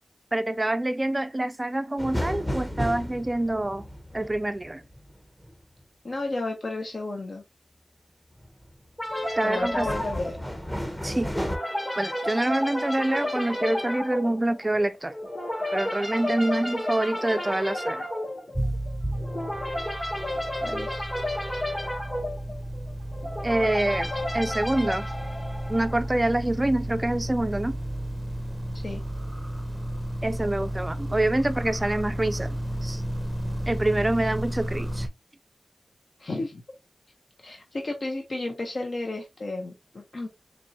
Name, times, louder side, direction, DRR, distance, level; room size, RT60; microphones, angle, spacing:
voice 1, 0.3-3.9 4.1-4.8 9.4-9.9 11.0-11.3 12.0-15.1 15.7-18.1 23.4-25.1 25.7-27.8 30.2-33.0 33.7-35.1, right 1 dB, 25° right, 0.3 m, -26 dB
sound 1, 2.0-5.8 8.4-8.8 9.2-11.6, equal, 15° left, 1.0 m, -33 dB
voice 2, 6.0-7.4 9.4-10.5 20.6-21.1 28.7-29.0 36.2-36.6 37.4-40.3, left 2 dB, 60° left, 0.8 m, -32 dB
sound 2, 9.0-26.2, left 1 dB, 30° left, 2.1 m, -32 dB
sound 3, 18.5-35.1, right 1 dB, 10° right, 0.7 m, -33 dB
4.3 x 2.9 x 2.7 m
cardioid pair, 50°, 0 cm